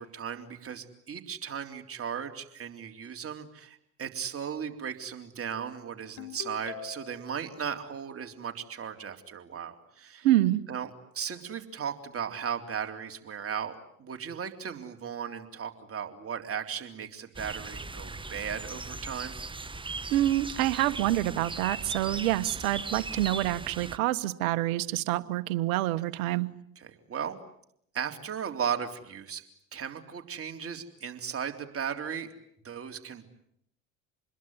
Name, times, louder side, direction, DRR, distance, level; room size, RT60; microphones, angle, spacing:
voice 1, 0.0-10.3 10.7-19.4 26.8-27.4 27.9-29.4 29.7-32.3 32.6-33.3, right 7 dB, 35° right, 5 dB, 3.7 m, -36 dB
Ringtone, 6.2-7.3, left 9 dB, 65° left, 3.4 m, -42 dB
voice 2, 10.2-10.6 20.1-26.5, right 15 dB, 70° right, 13 dB, 1.5 m, -27 dB
sound 1, 17.3-24.0, right 3 dB, 10° right, 1.3 m, -39 dB
28.0 x 21.5 x 9.6 m, 0.71 s
hypercardioid pair, 75°, 41 cm